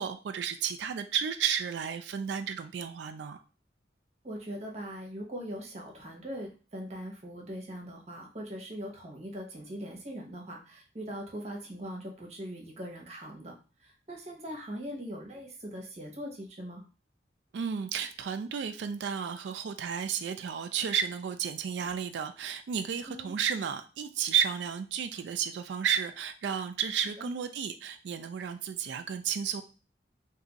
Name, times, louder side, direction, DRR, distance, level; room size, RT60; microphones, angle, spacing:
voice 1, 0.0-3.4 17.5-29.6, right 8 dB, 75° right, 8 dB, 0.3 m, -32 dB
voice 2, 4.2-13.5 13.8-16.8 21.8-21.9 23.1-23.3 27.2-27.3, equal, 40° right, 0 dB, 0.9 m, -41 dB
2.7 x 2.5 x 3.9 m, 0.35 s
head